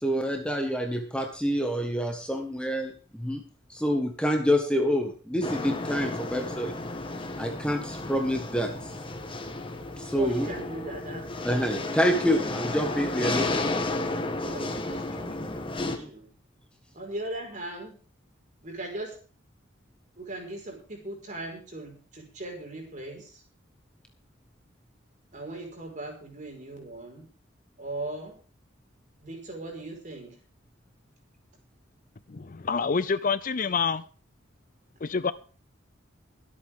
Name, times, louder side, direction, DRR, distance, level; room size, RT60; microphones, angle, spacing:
voice 1, 0.0-3.4 3.7-6.7 7.4-8.9 10.0-10.5 11.4-13.6 15.8-16.1, equal, 5° left, 3 dB, 1.6 m, -27 dB
Metal Rustle Loop, 5.4-16.0, left 2 dB, 25° left, 1.6 m, -32 dB
voice 2, 10.1-11.9 12.3-12.5 14.4-15.4 15.7-16.3 16.9-17.9 18.6-19.2 20.2-23.4 25.3-27.2 27.8-28.3 29.2-30.3, right 2 dB, 40° right, 2 dB, 5.0 m, -39 dB
voice 3, 32.3-34.0 35.0-35.3, left 5 dB, 40° left, 15 dB, 0.5 m, -27 dB
23.5 x 8.7 x 3.7 m, 0.39 s
head